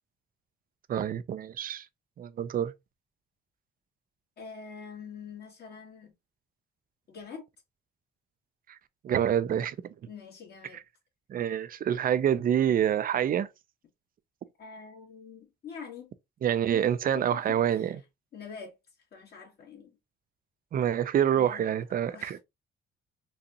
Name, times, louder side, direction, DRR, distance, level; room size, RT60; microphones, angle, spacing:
voice 1, 0.9-1.9 2.2-2.7 9.0-9.8 11.3-13.5 16.4-18.0 20.7-22.4, right 9 dB, 45° right, 0.4 m, -27 dB
voice 2, 4.4-6.1 7.1-7.4 10.1-10.8 14.6-16.1 17.1-17.9 18.3-18.7 19.1-19.9 21.3-21.8 22.1-22.4, left 6 dB, 55° left, 1.9 m, -45 dB
4.0 x 2.4 x 2.7 m
cardioid pair, 90°, 20 cm